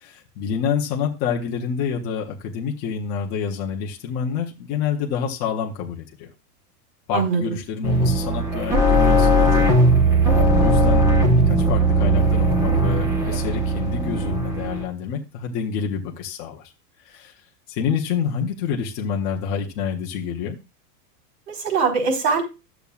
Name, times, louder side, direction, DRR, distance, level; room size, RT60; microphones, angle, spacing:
voice 1, 0.0-6.3 7.1-9.9 10.6-16.6 17.1-17.3 17.7-20.6, left 7 dB, 20° left, -1 dB, 0.6 m, -28 dB
voice 2, 7.1-7.6 21.5-22.4, right 5 dB, 75° right, 0 dB, 4.6 m, -22 dB
sound 1, 7.8-14.8, right 1 dB, 5° right, 1.0 m, -18 dB
12.0 x 7.0 x 2.4 m, 0.27 s
supercardioid pair, 175°, 48 cm